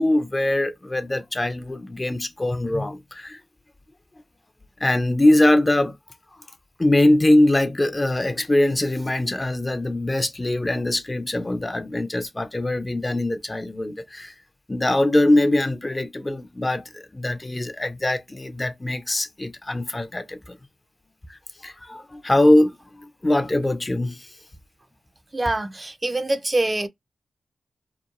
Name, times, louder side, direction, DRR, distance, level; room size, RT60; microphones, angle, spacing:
voice 1, 0.0-3.4 4.8-5.9 6.8-14.3 14.7-20.6 21.6-24.3, left 1 dB, 25° left, 0.4 m, -22 dB
voice 2, 25.3-26.9, right 2 dB, 30° right, 0.4 m, -24 dB
2.9 x 2.2 x 2.4 m
cardioid pair, 45°, 0 cm